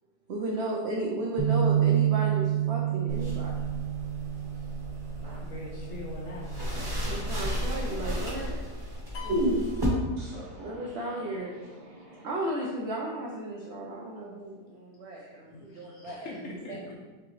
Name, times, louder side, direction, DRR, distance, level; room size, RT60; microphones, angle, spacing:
voice 1, 0.3-3.5 7.1-8.6 10.6-11.6 12.2-16.3, right 1 dB, 70° right, -2 dB, 0.6 m, -34 dB
sound 1, 1.4-7.6, right 10 dB, 25° left, 0.5 m, -29 dB
sound 2, 3.1-9.9, equal, 20° right, 0.8 m, -35 dB
voice 2, 5.4-6.6 15.5-16.9, left 3 dB, 65° left, -2 dB, 0.8 m, -42 dB
voice 3, 7.0-8.4 9.2-9.8 10.2-12.2, right 1 dB, 55° right, -4 dB, 1.4 m, -35 dB
sound 3, 9.1-10.8, left 8 dB, 85° left, 1.6 m, -46 dB
4.8 x 3.6 x 3.1 m, 1.3 s
omnidirectional pair, 1.8 m